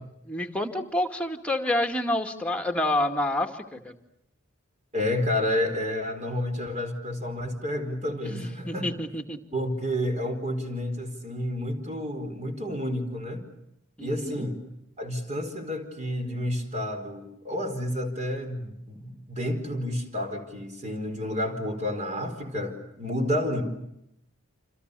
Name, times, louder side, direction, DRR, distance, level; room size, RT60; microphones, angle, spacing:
voice 1, 0.2-4.0 8.2-9.4 14.0-14.5, left 1 dB, 5° left, 4 dB, 2.1 m, -28 dB
voice 2, 4.9-8.9 9.5-13.5 14.0-14.6 15.0-23.6, left 1 dB, 35° right, 6 dB, 4.7 m, -30 dB
28.0 x 28.0 x 6.9 m, 0.81 s
head